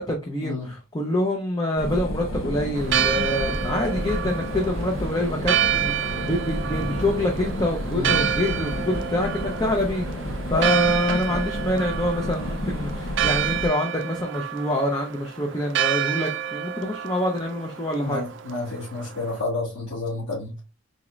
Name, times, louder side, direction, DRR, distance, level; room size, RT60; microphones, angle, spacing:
voice 1, 0.0-10.1 10.5-18.2, left 1 dB, 20° left, 0.6 m, -26 dB
sound 1, 1.8-13.7, left 1 dB, 80° left, 1.0 m, -30 dB
Church bell, 2.8-19.4, right 10 dB, 60° right, 0.4 m, -29 dB
voice 2, 11.1-11.4 18.0-20.5, left 3 dB, 65° left, 1.7 m, -30 dB
4.0 x 3.7 x 3.1 m
head